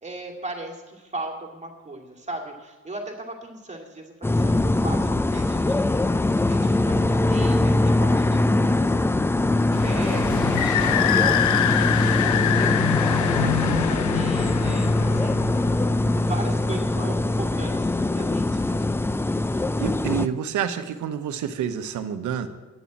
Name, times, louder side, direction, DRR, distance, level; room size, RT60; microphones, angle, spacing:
voice 1, 0.0-9.0 9.4-12.8 13.2-15.3 15.9-18.8, right 2 dB, 25° right, 1 dB, 2.5 m, -37 dB
sound 1, 4.2-20.3, left 2 dB, 10° left, 0.4 m, -22 dB
sound 2, 9.7-17.1, left 12 dB, 75° left, 0.7 m, -26 dB
voice 2, 13.3-13.9 19.8-22.5, right 8 dB, 75° right, 10 dB, 1.0 m, -28 dB
10.0 x 7.2 x 8.6 m, 1.2 s
cardioid pair, 90°, 30 cm